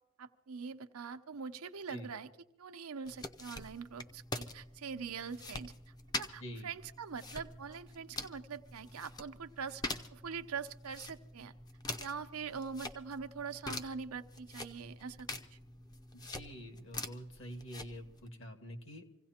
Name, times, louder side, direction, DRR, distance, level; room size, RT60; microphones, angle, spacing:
voice 1, 0.2-2.3 2.6-5.7 6.1-11.5 12.0-15.3, right 5 dB, 90° right, 8 dB, 0.7 m, -43 dB
sound 1, 3.1-18.3, left 2 dB, 20° left, 0.6 m, -45 dB
voice 2, 16.1-19.0, equal, 65° left, 5 dB, 1.8 m, -46 dB
26.0 x 16.5 x 2.9 m, 0.87 s
head